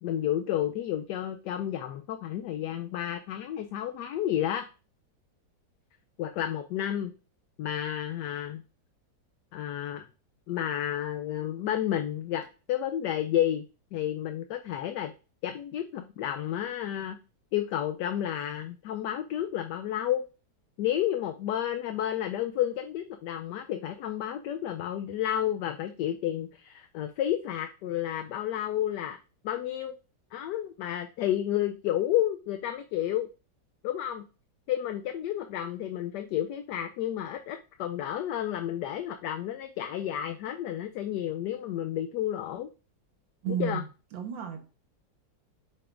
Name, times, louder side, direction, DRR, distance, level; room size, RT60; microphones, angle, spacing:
voice 1, 0.0-4.6 6.2-7.1 7.6-8.6 9.5-10.0 10.5-13.7 13.9-15.1 15.4-17.2 17.5-20.2 20.8-29.2 29.4-29.9 30.3-33.3 33.8-34.2 34.7-42.7 43.5-43.8, left 11 dB, 75° left, 7 dB, 1.1 m, -31 dB
voice 2, 43.4-43.9 44.1-44.6, right 8 dB, 85° right, 5 dB, 1.8 m, -32 dB
8.8 x 6.7 x 2.5 m, 0.34 s
omnidirectional pair, 2.0 m